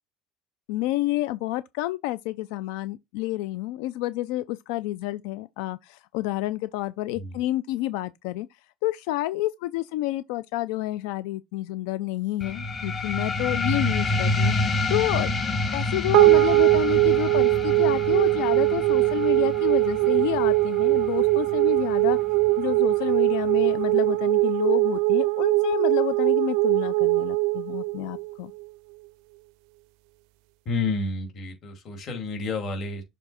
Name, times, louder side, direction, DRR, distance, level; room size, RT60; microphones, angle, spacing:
voice 1, 0.7-8.5 8.8-15.3 15.7-22.2 22.6-28.5, left 16 dB, 90° left, 0.4 m, -29 dB
sound 1, 12.4-23.5, left 2 dB, 25° left, 1.4 m, -29 dB
sound 2, 16.1-28.7, right 23 dB, 80° right, 0.4 m, -21 dB
voice 2, 30.7-33.0, left 3 dB, 40° left, 2.6 m, -30 dB
6.8 x 3.5 x 4.3 m
cardioid pair, 145°, 0 cm